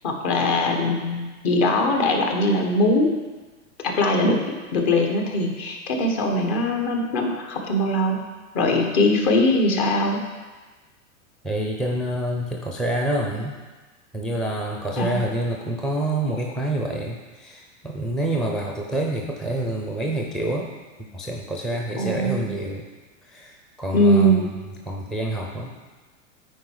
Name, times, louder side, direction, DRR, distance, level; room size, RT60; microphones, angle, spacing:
voice 1, 0.0-3.1 3.8-8.2 8.5-10.2 15.0-15.2 22.0-22.5 23.9-24.5, left 1 dB, 50° left, 2 dB, 1.6 m, -21 dB
voice 2, 11.4-13.6 14.1-20.7 21.1-22.9 23.2-24.4 24.9-25.7, right 1 dB, ahead, 0 dB, 0.4 m, -27 dB
8.9 x 4.7 x 4.8 m, 1.3 s
hypercardioid pair, 115°, 40 cm